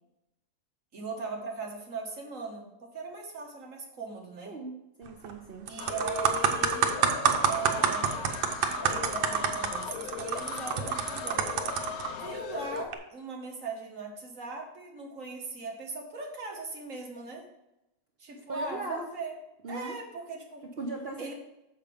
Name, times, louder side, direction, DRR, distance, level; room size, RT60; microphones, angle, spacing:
voice 1, 0.9-4.5 5.7-7.0 7.4-8.4 8.9-11.4 12.2-17.4 18.2-19.3 19.7-20.6 21.2-21.3, right 4 dB, 45° right, 1 dB, 1.6 m, -39 dB
voice 2, 5.0-5.7 18.5-19.1 19.6-20.0 20.8-21.3, right 2 dB, 65° right, 1 dB, 0.6 m, -38 dB
sound 1, 5.1-5.3 5.7-12.1 12.8-13.0, right 7 dB, 80° right, 1.5 m, -28 dB
sound 2, 5.8-12.8, left 7 dB, 70° left, 0.9 m, -38 dB
6.8 x 5.9 x 5.1 m, 0.90 s
omnidirectional pair, 2.1 m